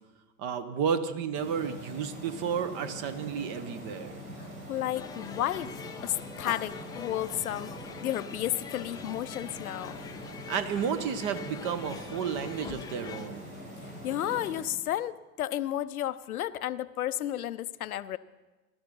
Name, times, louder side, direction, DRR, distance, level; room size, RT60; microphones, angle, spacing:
voice 1, 0.4-4.1 10.5-13.5, right 7 dB, 45° right, 11 dB, 1.2 m, -32 dB
sound 1, 1.3-14.6, equal, 75° right, 5.4 m, -44 dB
voice 2, 4.7-5.7 6.0-7.7 8.0-10.0 14.0-18.2, left 12 dB, 75° left, 15 dB, 0.6 m, -32 dB
sound 2, 4.9-13.3, left 7 dB, 10° left, 0.3 m, -44 dB
17.5 x 12.5 x 4.0 m, 1.1 s
figure-of-eight pair, 85°, 44 cm